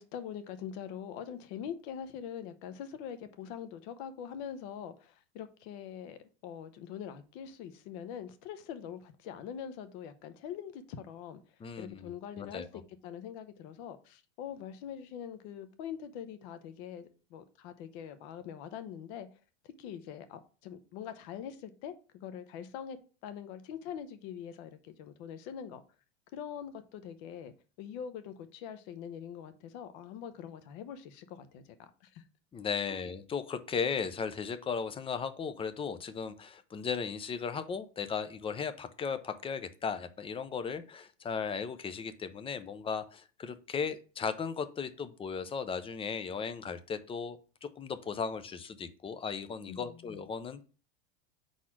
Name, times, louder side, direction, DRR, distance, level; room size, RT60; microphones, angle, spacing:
voice 1, 0.0-11.4 11.8-19.3 19.6-23.0 23.2-25.8 26.3-32.2 32.9-33.0 49.7-50.2, left 8 dB, 60° left, 0.9 m, -43 dB
voice 2, 11.6-12.7 32.5-50.6, left 6 dB, 15° left, 0.4 m, -36 dB
4.9 x 4.2 x 5.8 m
supercardioid pair, 120°, 38 cm